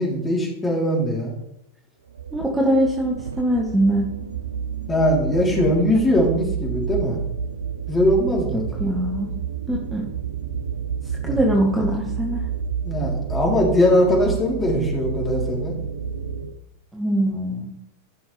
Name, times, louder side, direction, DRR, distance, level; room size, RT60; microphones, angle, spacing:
voice 1, 0.0-1.3 4.9-7.2 7.9-8.7 11.2-11.4 12.8-15.8, left 1 dB, 15° left, -2 dB, 3.6 m, -21 dB
sound 1, 2.1-16.5, right 7 dB, 75° right, 0.6 m, -30 dB
voice 2, 2.3-4.1 8.5-9.3 9.7-10.1 11.2-12.4 16.9-17.7, right 1 dB, 5° right, -2 dB, 1.6 m, -22 dB
15.0 x 6.2 x 3.4 m, 0.85 s
figure-of-eight pair, 90°, 0 cm